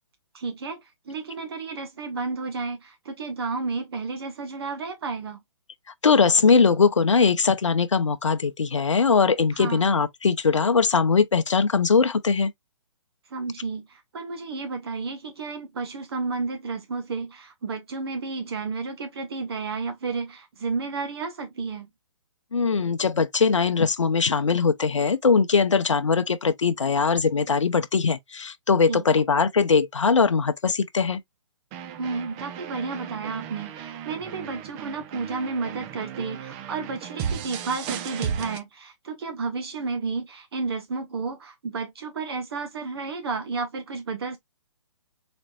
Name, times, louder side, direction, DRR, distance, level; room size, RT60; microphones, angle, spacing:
voice 1, 0.3-5.4 9.5-9.9 13.3-21.9 28.9-29.2 32.0-44.4, right 4 dB, 55° right, 1.2 m, -32 dB
voice 2, 6.0-12.5 22.5-31.2, left 5 dB, 75° left, 0.8 m, -21 dB
sound 1, 31.7-38.6, right 8 dB, 25° right, 0.7 m, -35 dB
4.3 x 4.1 x 2.4 m
figure-of-eight pair, 135°, 16 cm